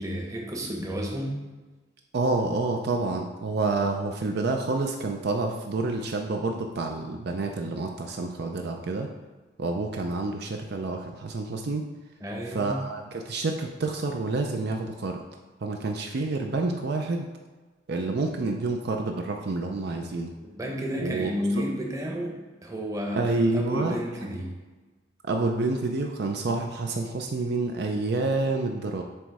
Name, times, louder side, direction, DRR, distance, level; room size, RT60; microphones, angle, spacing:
voice 1, 0.0-1.4 12.2-12.9 20.5-24.5, equal, 15° right, -1 dB, 0.9 m, -31 dB
voice 2, 2.1-9.1 9.6-11.9 12.5-15.2 15.6-17.3 17.9-20.3 21.0-21.3 23.1-24.0 25.2-29.0, right 3 dB, 55° right, 3 dB, 0.5 m, -28 dB
7.7 x 3.1 x 4.7 m, 1.3 s
head